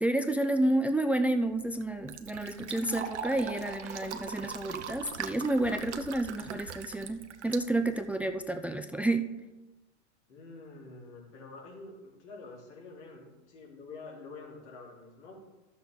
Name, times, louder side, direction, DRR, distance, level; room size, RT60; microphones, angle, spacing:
voice 1, 0.0-9.3, right 1 dB, 5° right, 8 dB, 0.5 m, -30 dB
Fill (with liquid), 1.3-8.4, right 7 dB, 85° right, 0.9 m, -42 dB
voice 2, 10.3-15.3, left 3 dB, 80° left, -3 dB, 3.9 m, -47 dB
12.5 x 7.2 x 4.0 m, 1.1 s
hypercardioid pair, 95°, 34 cm